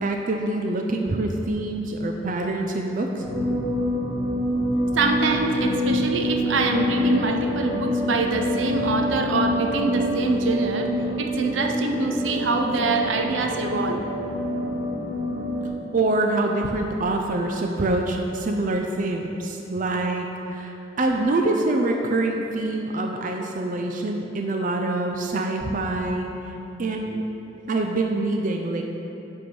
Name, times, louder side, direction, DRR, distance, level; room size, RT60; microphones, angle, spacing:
voice 1, 0.0-3.2 15.9-26.3 26.8-27.2 27.7-28.8, right 2 dB, 45° right, 2 dB, 0.5 m, -25 dB
sound 1, 3.2-15.7, equal, 10° left, 1.7 m, -26 dB
voice 2, 4.9-14.0, right 3 dB, 80° right, 3 dB, 0.7 m, -25 dB
9.9 x 3.5 x 6.0 m, 3.0 s
head